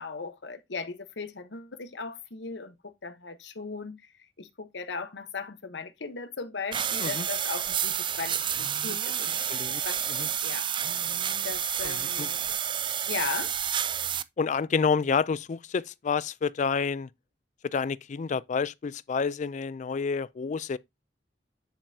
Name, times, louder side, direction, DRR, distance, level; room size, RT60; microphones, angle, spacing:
voice 1, 0.0-4.0 4.4-9.6 9.8-10.0 10.4-10.7 11.4-12.4 13.1-13.5, left 4 dB, 75° left, 1.0 m, -37 dB
sound 1, 6.7-14.2, right 9 dB, 30° right, 0.4 m, -30 dB
voice 2, 9.5-9.8 10.1-10.3 11.8-12.3 14.4-17.1 17.6-20.8, left 5 dB, 45° left, 0.4 m, -29 dB
10.0 x 5.4 x 2.7 m
head